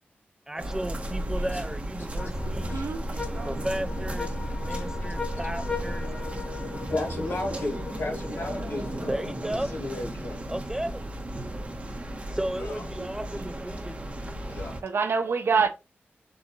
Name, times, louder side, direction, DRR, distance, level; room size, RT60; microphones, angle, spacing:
voice 1, 0.5-2.8 3.4-4.3 4.6-6.1 9.1-9.7 10.5-11.0 12.3-14.0, right 1 dB, 15° right, 0.3 m, -34 dB
sound 1, 0.6-14.8, right 1 dB, 30° right, 1.0 m, -35 dB
sound 2, 2.0-6.9, equal, 40° left, 2.3 m, -35 dB
sound 3, 2.2-9.7, left 5 dB, 25° left, 0.9 m, -39 dB
voice 2, 2.4-3.0 13.0-13.1 14.8-15.7, right 5 dB, 75° right, 0.6 m, -26 dB
voice 3, 6.9-10.5 12.6-12.8 14.4-14.7, left 2 dB, 75° left, 2.1 m, -34 dB
6.7 x 2.5 x 3.0 m
wide cardioid pair, 110°, 4 cm